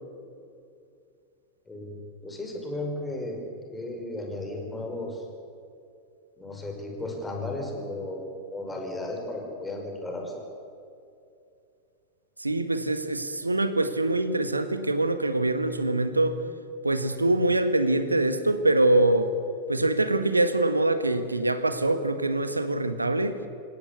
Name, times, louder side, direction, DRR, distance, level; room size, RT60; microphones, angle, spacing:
voice 1, 1.7-3.4 3.7-5.2 6.4-10.3, left 2 dB, 10° left, 1 dB, 5.4 m, -34 dB
voice 2, 12.4-16.4 16.8-19.3 19.7-23.4, right 2 dB, 80° right, 11 dB, 1.5 m, -24 dB
28.5 x 17.5 x 8.2 m, 2.5 s
figure-of-eight pair, 90°, 0 cm